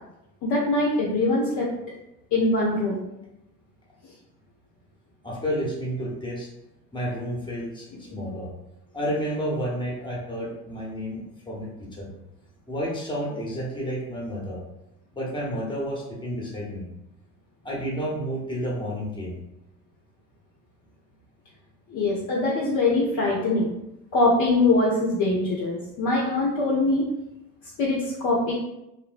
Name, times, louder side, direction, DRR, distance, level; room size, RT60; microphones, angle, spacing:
voice 1, 0.4-1.7 2.3-3.0 21.9-23.7 24.1-27.0 27.8-28.5, left 2 dB, 40° left, -4 dB, 0.6 m, -23 dB
voice 2, 5.2-6.5 6.9-8.5 8.9-12.1 12.7-14.6 15.1-16.9 17.6-19.4, equal, 10° left, -3 dB, 0.8 m, -31 dB
3.0 x 2.0 x 2.4 m, 0.89 s
hypercardioid pair, 70°, 48 cm